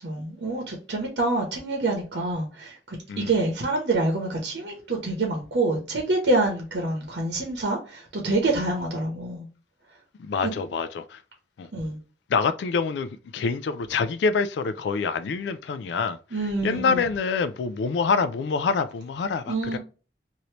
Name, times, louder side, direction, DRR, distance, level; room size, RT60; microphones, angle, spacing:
voice 1, 0.0-9.5 10.4-10.5 11.7-12.0 16.3-17.1 19.5-19.8, right 2 dB, 70° right, 0.9 m, -26 dB
voice 2, 10.2-11.2 11.6-11.7 12.3-16.2 16.6-19.8, left 5 dB, 70° left, 0.3 m, -26 dB
2.9 x 2.6 x 3.1 m
head